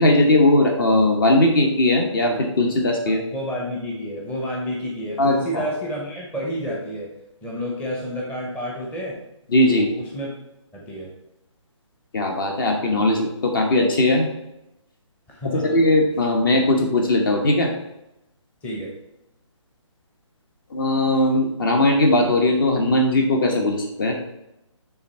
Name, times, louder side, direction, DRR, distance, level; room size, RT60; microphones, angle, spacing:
voice 1, 0.0-3.2 5.2-5.6 9.5-9.9 12.1-14.3 15.5-17.7 20.7-24.1, left 1 dB, 45° left, 2 dB, 1.1 m, -19 dB
voice 2, 3.1-7.1 7.4-9.2 9.7-10.3 10.7-11.1 15.3-15.8 18.6-18.9, equal, 10° left, -3 dB, 0.8 m, -30 dB
9.5 x 3.6 x 4.3 m, 0.89 s
hypercardioid pair, 155°, 16 cm